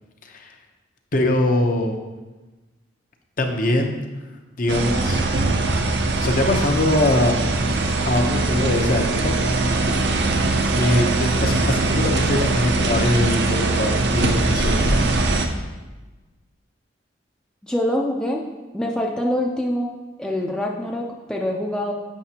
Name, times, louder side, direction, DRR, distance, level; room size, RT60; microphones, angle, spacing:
voice 1, 1.1-2.0 3.4-4.0 4.6-5.2 6.2-7.4 7.6-7.8 8.0-9.4 10.7-14.8, left 1 dB, 45° left, 3 dB, 0.7 m, -22 dB
sound 1, 4.7-15.5, right 2 dB, 60° right, 0.6 m, -21 dB
voice 2, 17.6-18.4 18.7-19.9 20.2-21.9, left 1 dB, 5° left, -1 dB, 0.4 m, -24 dB
7.3 x 5.7 x 2.8 m, 1.2 s
head